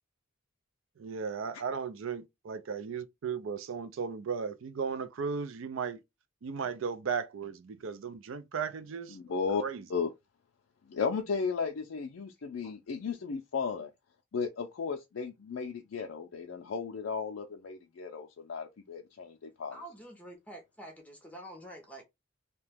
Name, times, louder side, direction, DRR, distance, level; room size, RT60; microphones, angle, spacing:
voice 1, 1.0-6.0 6.4-9.9, right 6 dB, 65° right, 0.4 m, -36 dB
voice 2, 9.1-9.6 9.9-10.1 10.9-13.9 14.3-19.8, left 5 dB, 70° left, 0.4 m, -35 dB
voice 3, 19.7-22.0, right 1 dB, 5° left, 0.6 m, -47 dB
2.8 x 2.1 x 3.3 m
head